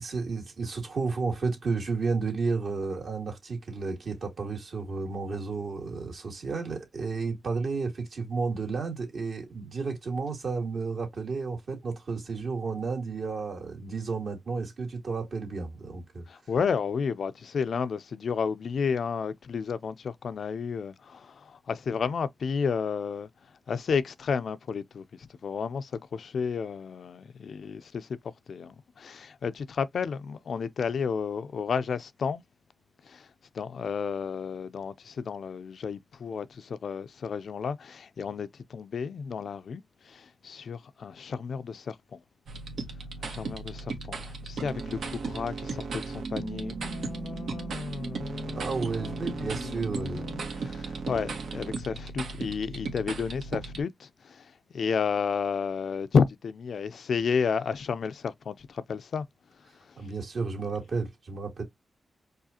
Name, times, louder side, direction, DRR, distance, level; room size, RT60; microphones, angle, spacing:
voice 1, 0.0-16.3 48.6-50.3 60.0-61.6, right 4 dB, 65° right, 2.0 m, -32 dB
voice 2, 16.3-32.4 33.0-33.3 33.5-42.2 43.2-59.3 59.6-60.0, left 6 dB, 70° left, 0.4 m, -32 dB
sound 1, 42.5-53.8, right 4 dB, 85° right, 1.3 m, -36 dB
4.7 x 2.4 x 2.8 m
wide cardioid pair, 110°, 0 cm